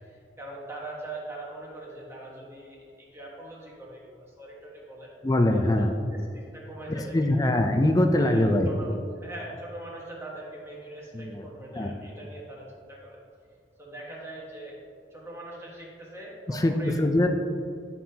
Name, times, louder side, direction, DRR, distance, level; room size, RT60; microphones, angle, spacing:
voice 1, 0.0-5.1 5.5-6.3 6.5-7.5 8.2-8.9 9.2-13.2 13.8-14.8 15.1-17.0, right 1 dB, 15° right, -4 dB, 1.4 m, -42 dB
voice 2, 5.2-5.9 7.1-8.7 11.1-11.5 11.8-11.9 16.5-17.3, left 1 dB, 20° left, 5 dB, 0.4 m, -22 dB
10.5 x 5.6 x 2.9 m, 2.3 s
head